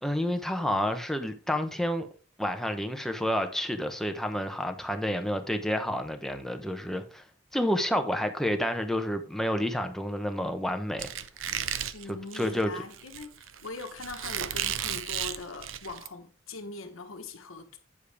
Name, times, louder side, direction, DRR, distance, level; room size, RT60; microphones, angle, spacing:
voice 1, 0.0-2.1 2.4-7.2 7.5-11.1 12.1-12.7, equal, ahead, 0.9 m, -29 dB
Squeak, 11.0-16.1, right 10 dB, 75° right, 0.6 m, -34 dB
voice 2, 11.9-17.8, left 3 dB, 90° left, 1.2 m, -41 dB
8.4 x 7.3 x 3.4 m
head